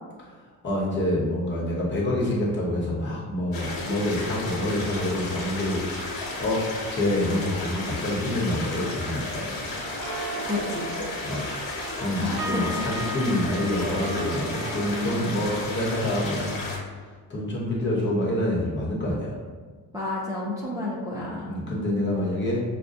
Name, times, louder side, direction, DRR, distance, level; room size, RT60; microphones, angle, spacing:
voice 1, 0.6-5.8 6.1-9.6 11.2-11.5 12.0-16.6 16.9-17.0 17.3-19.4 21.5-22.6, left 1 dB, 35° left, -4 dB, 1.0 m, -27 dB
sound 1, 3.5-16.8, left 2 dB, 80° left, 1.3 m, -33 dB
sound 2, 4.9-7.0 9.7-15.7, right 2 dB, 50° right, 0.7 m, -37 dB
voice 2, 10.4-10.9 12.2-12.9 14.1-14.3 15.0-15.5 19.9-21.6, left 2 dB, 10° right, -8 dB, 0.5 m, -31 dB
6.3 x 2.2 x 2.6 m, 1.4 s
cardioid pair, 155°, 34 cm